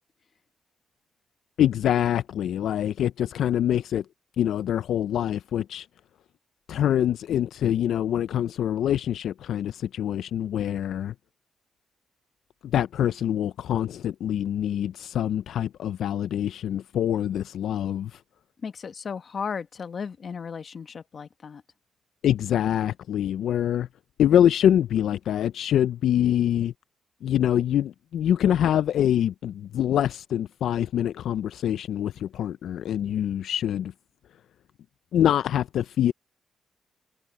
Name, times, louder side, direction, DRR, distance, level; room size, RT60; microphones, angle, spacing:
voice 1, 1.6-4.1 4.4-5.9 6.7-11.1 12.6-18.2 22.2-23.9 24.2-26.7 27.2-33.9 35.1-36.1, left 10 dB, 80° left, 0.4 m, -25 dB
voice 2, 18.6-21.6, left 6 dB, 55° left, 1.2 m, -35 dB
cardioid pair, 70°, 0 cm